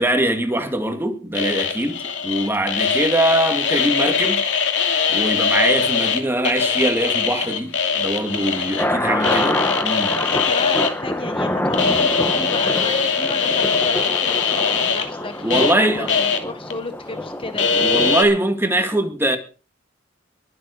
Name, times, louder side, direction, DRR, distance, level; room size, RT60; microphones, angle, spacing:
voice 1, 0.0-4.4 5.1-9.6 9.8-10.2 15.4-16.1 17.7-19.4, right 1 dB, 10° right, 2.2 m, -22 dB
sound 1, 1.3-6.2 6.4-8.8 9.2-10.9 11.7-15.7 16.1-16.4 16.7-16.8 17.6-18.2, left 6 dB, 70° left, 2.6 m, -21 dB
sound 2, 8.0-18.2, left 1 dB, 10° left, 1.3 m, -26 dB
voice 2, 9.0-9.7 10.2-17.7, left 2 dB, 30° left, 1.5 m, -34 dB
22.0 x 7.8 x 4.9 m
head